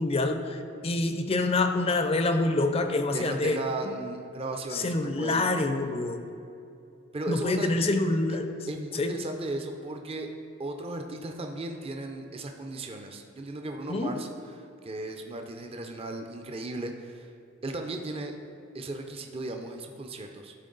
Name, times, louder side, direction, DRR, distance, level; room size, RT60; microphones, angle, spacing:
voice 1, 0.0-3.6 4.7-6.2 7.3-8.5 8.9-9.2 13.9-14.2, left 2 dB, 30° left, 7 dB, 0.5 m, -26 dB
voice 2, 3.1-5.4 7.1-7.7 8.3-8.4 8.7-10.3 10.6-14.3 14.6-17.3 17.6-18.4 18.7-20.5, right 2 dB, 30° right, 4 dB, 0.5 m, -36 dB
12.5 x 4.6 x 3.9 m, 2.6 s
head